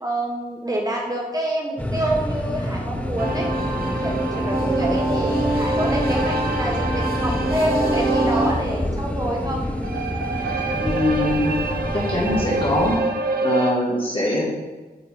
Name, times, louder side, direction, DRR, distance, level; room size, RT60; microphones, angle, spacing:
voice 1, 0.0-3.5 4.0-9.7, right 1 dB, 25° right, -1 dB, 1.0 m, -27 dB
sound 1, 1.8-13.0, left 1 dB, 10° left, 0.6 m, -27 dB
sound 2, 3.2-8.7 9.6-13.7, right 2 dB, 80° right, 0.7 m, -25 dB
voice 2, 10.8-11.5 11.9-13.0 13.4-14.4, left 1 dB, 35° left, -4 dB, 2.2 m, -22 dB
8.0 x 3.9 x 3.9 m, 1.2 s
cardioid pair, 75°, 15 cm